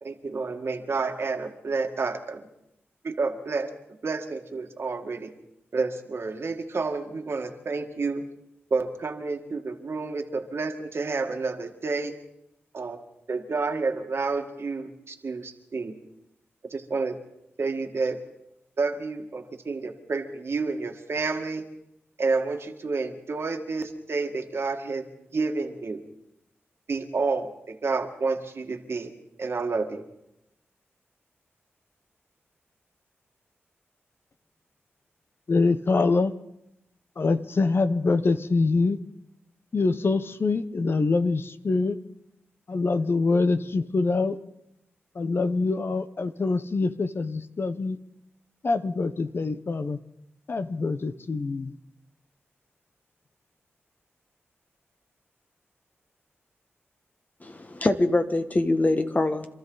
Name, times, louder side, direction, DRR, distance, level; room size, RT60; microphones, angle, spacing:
voice 1, 0.0-2.5 3.0-3.7 4.0-5.3 5.7-8.2 8.7-12.1 12.7-13.0 13.3-15.9 16.7-17.2 17.6-18.2 18.8-21.6 22.2-25.0 25.3-26.0 26.9-29.1 29.4-30.0, right 4 dB, 60° right, 1.8 m, -29 dB
voice 2, 35.5-36.3 37.2-39.0 39.7-42.0 42.7-44.4 45.1-48.0 48.6-50.0 50.5-51.8, left 3 dB, 55° left, 0.8 m, -24 dB
voice 3, 57.4-59.5, left 2 dB, 35° left, 1.4 m, -24 dB
27.0 x 13.5 x 4.0 m
cardioid pair, 55°, 5 cm